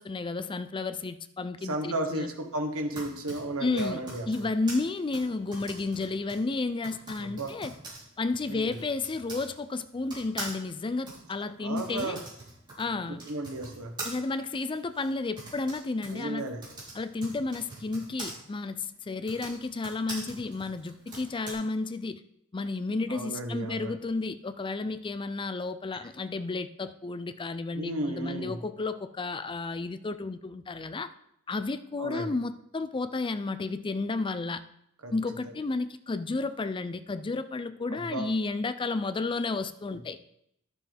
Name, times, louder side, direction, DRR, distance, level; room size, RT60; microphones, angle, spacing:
voice 1, 0.0-2.3 3.6-7.7 8.2-12.2 12.8-13.2 14.0-16.5 16.9-22.2 22.5-31.1 31.5-34.6 35.1-40.2, left 3 dB, 20° left, 0.4 m, -32 dB
voice 2, 1.6-4.5 7.2-7.5 8.5-8.8 11.6-12.2 12.9-14.0 16.1-16.6 23.1-23.9 27.7-28.6 32.0-32.3 35.0-35.1 35.4-35.5 37.9-38.3 39.9-40.0, right 2 dB, 70° right, 1.4 m, -34 dB
Typing, 2.7-9.5 10.1-18.3 19.1-21.5, right 2 dB, 20° right, 3.4 m, -43 dB
11.5 x 7.0 x 3.5 m
head